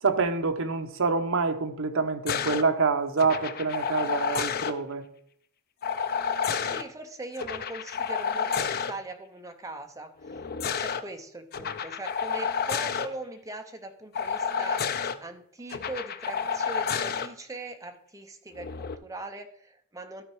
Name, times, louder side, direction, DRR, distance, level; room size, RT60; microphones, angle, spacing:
voice 1, 0.0-5.0, right 4 dB, 65° right, 0.9 m, -26 dB
sound 1, 2.3-2.6 3.2-4.7 5.8-6.8 7.4-8.9 10.2-11.0 11.5-13.1 14.1-15.1 15.7-17.3 18.6-18.9, left 6 dB, 45° left, 0.5 m, -30 dB
voice 2, 6.6-10.1 10.6-14.8 15.2-20.2, right 2 dB, 15° right, 0.8 m, -40 dB
13.0 x 4.4 x 4.7 m
head